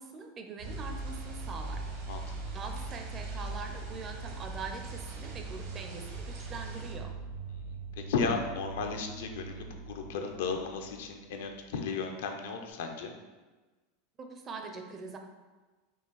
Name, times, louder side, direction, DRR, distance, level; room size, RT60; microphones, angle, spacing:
voice 1, 0.0-7.1 14.2-15.2, right 4 dB, 25° right, 4 dB, 0.4 m, -43 dB
sound 1, 0.6-6.9, right 2 dB, 60° right, 0.9 m, -51 dB
sound 2, 0.6-11.3, right 3 dB, 90° right, 1.3 m, -41 dB
voice 2, 8.1-13.1, left 5 dB, 80° left, 4 dB, 0.5 m, -34 dB
5.3 x 2.4 x 3.1 m, 1.3 s
supercardioid pair, 140°, 0 cm